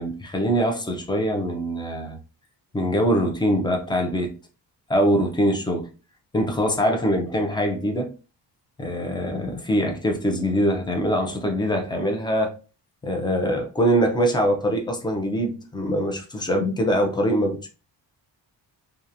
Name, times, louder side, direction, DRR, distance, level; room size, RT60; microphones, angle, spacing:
voice 1, 0.0-2.2 2.7-4.3 4.9-5.9 6.3-8.1 8.8-12.6 13.0-17.7, equal, 10° left, 0.5 m, -23 dB
2.9 x 2.4 x 2.5 m
cardioid pair, 125°, 42 cm